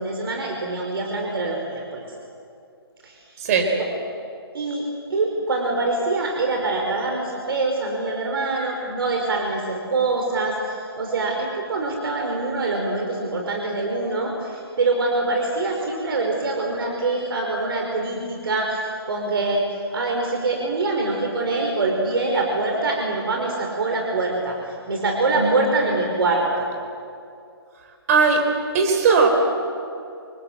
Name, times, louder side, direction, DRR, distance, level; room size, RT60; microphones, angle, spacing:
voice 1, 0.0-2.1 3.0-3.1 3.8-3.9 4.5-19.7 19.9-26.7, right 3 dB, 60° right, 1 dB, 5.0 m, -24 dB
voice 2, 3.4-3.7 25.3-25.8 28.1-28.4 28.7-29.3, right 5 dB, 35° right, 4 dB, 4.3 m, -18 dB
27.5 x 25.5 x 7.9 m, 2.5 s
hypercardioid pair, 150°, 13 cm